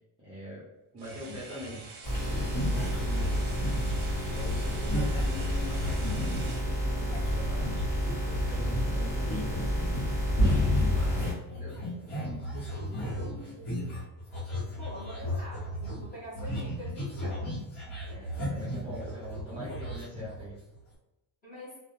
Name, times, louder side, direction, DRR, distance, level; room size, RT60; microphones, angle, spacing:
voice 1, 0.2-0.6 0.9-1.8 2.2-3.4 4.2-7.8 8.2-9.7 10.4-11.8 18.1-20.6, equal, 10° right, -10 dB, 0.4 m, -44 dB
sound 1, 1.0-6.7, right 4 dB, 60° right, 0.6 m, -47 dB
sound 2, 1.1-1.9 2.1-6.6 7.1-20.8, equal, 70° left, 1.0 m, -36 dB
sound 3, 2.0-11.3, equal, 40° left, 1.3 m, -29 dB
voice 2, 13.2-13.9 14.6-17.7 18.2-18.3 21.4-21.8, left 1 dB, 20° left, -7 dB, 0.8 m, -46 dB
2.3 x 2.1 x 2.9 m, 0.98 s
cardioid pair, 180°, 47 cm